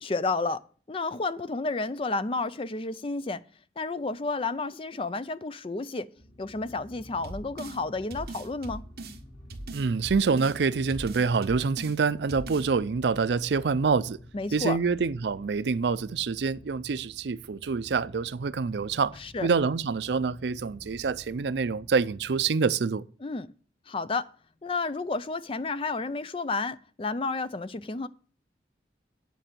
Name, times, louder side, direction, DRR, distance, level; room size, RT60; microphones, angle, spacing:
voice 1, 0.0-0.6 0.9-3.4 3.8-6.1 6.4-8.8 14.3-14.8 19.2-19.5 23.2-23.5 23.9-24.3 24.6-28.1, left 3 dB, 30° left, 0.4 m, -31 dB
sound 1, 6.2-22.6, equal, 75° left, 2.6 m, -51 dB
sound 2, 7.2-7.8 8.1-9.2 9.5-10.6 10.9-12.0 12.3-12.7, right 2 dB, 60° right, 1.3 m, -39 dB
voice 2, 9.7-14.2 14.5-23.0, right 5 dB, 80° right, 0.5 m, -26 dB
9.3 x 5.3 x 7.4 m
head